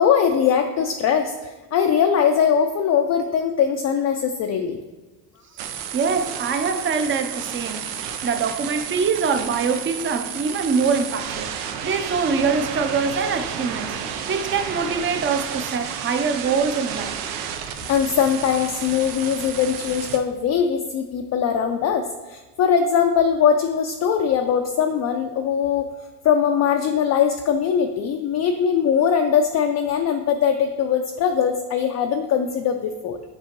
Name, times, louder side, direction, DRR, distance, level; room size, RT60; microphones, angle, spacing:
voice 1, 0.0-4.8 17.9-25.9 26.2-33.2, left 7 dB, 40° left, 0.4 m, -21 dB
voice 2, 5.5-11.5 11.8-14.0 14.3-17.2, right 5 dB, 25° right, 0.5 m, -24 dB
sound 1, 5.6-20.2, right 8 dB, 85° right, 0.7 m, -31 dB
7.4 x 4.3 x 2.9 m
cardioid pair, 115°, 46 cm